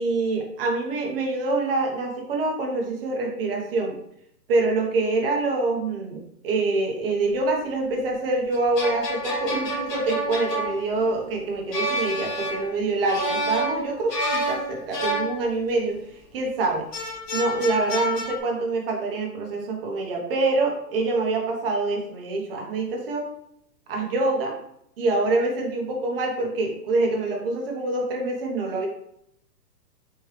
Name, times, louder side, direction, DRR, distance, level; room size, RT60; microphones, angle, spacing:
voice 1, 0.0-4.0 4.5-16.0 16.3-23.3 23.9-24.6 25.0-28.9, right 3 dB, 35° right, 1 dB, 1.0 m, -25 dB
sound 1, 8.5-16.0 16.9-18.4, equal, 75° left, 1.5 m, -29 dB
4.4 x 3.2 x 3.2 m, 0.73 s
hypercardioid pair, 155°, 49 cm